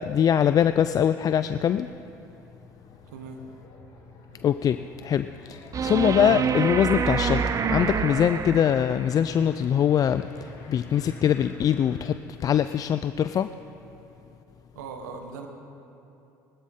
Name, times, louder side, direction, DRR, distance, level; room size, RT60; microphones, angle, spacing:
voice 1, 0.0-1.9 4.4-7.4 7.7-12.2 12.4-13.5, left 9 dB, 45° left, 12 dB, 0.4 m, -23 dB
sound 1, 2.1-12.2, left 2 dB, 75° left, 4.1 m, -47 dB
voice 2, 3.1-3.4 14.7-15.5, right 5 dB, 90° right, 4 dB, 1.4 m, -39 dB
sound 2, 5.7-9.1 11.7-11.8, right 6 dB, 40° right, 0.7 m, -26 dB
19.5 x 12.5 x 3.7 m, 2.8 s
hypercardioid pair, 70°, 9 cm